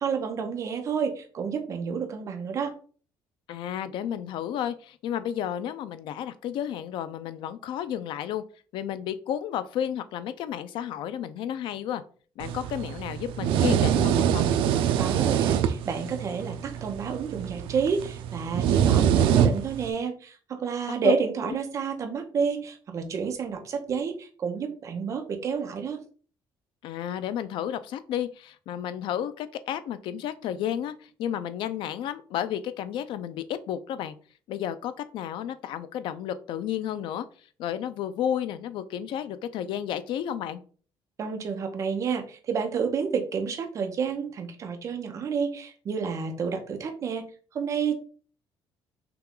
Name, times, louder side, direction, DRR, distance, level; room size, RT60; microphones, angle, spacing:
voice 1, 0.0-2.8 15.0-26.0 41.2-47.3 47.5-48.0, right 6 dB, 35° right, 4 dB, 0.8 m, -30 dB
voice 2, 3.5-8.4 8.7-12.0 12.4-14.5 21.0-21.1 26.8-30.9 31.2-34.1 34.5-37.2 37.6-40.6, left 10 dB, 65° left, 13 dB, 0.5 m, -32 dB
sound 1, 12.4-19.9, right 9 dB, 80° right, 0.4 m, -24 dB
5.8 x 2.3 x 3.8 m, 0.41 s
cardioid pair, 170°, 9 cm